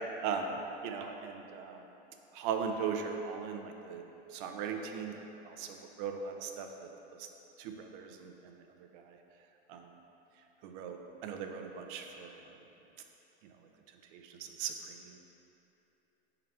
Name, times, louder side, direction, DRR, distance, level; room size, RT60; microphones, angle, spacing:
voice 1, 0.2-0.6 0.8-1.8 2.4-4.0 4.3-5.2 5.5-6.7 7.6-8.3 9.7-9.8 10.6-12.3 14.1-15.0, right 6 dB, 60° right, 4 dB, 0.6 m, -38 dB
5.6 x 3.9 x 4.4 m, 3.0 s
supercardioid pair, 140°, 30 cm